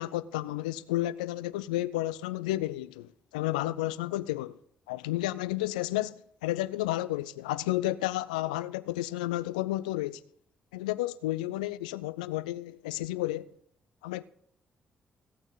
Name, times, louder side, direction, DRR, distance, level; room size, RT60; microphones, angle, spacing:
voice 1, 0.0-4.6 4.9-10.2 10.7-13.5 14.0-14.2, left 16 dB, 85° left, 0.4 m, -32 dB
16.5 x 8.9 x 3.9 m
hypercardioid pair, 45°, 4 cm